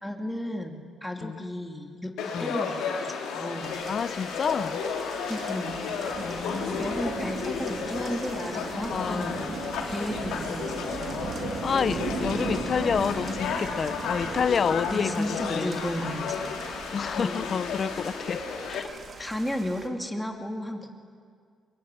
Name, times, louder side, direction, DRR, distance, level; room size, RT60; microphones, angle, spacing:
voice 1, 0.0-3.7 5.3-6.1 6.8-9.5 9.9-10.7 11.0-11.2 14.9-16.5 17.1-17.5 19.2-20.9, equal, 5° left, 3 dB, 2.5 m, -34 dB
Conversation / Crowd, 2.2-18.8, left 5 dB, 85° left, 3.6 m, -33 dB
sound 1, 3.6-19.9, right 4 dB, 50° right, 2.7 m, -38 dB
voice 2, 3.9-4.8 6.2-6.9 8.9-9.4 11.6-15.8 16.9-18.4 18.7-18.9 19.2-19.3, left 6 dB, 50° left, 16 dB, 0.6 m, -29 dB
22.5 x 22.5 x 9.7 m, 2.1 s
cardioid pair, 90°, 0 cm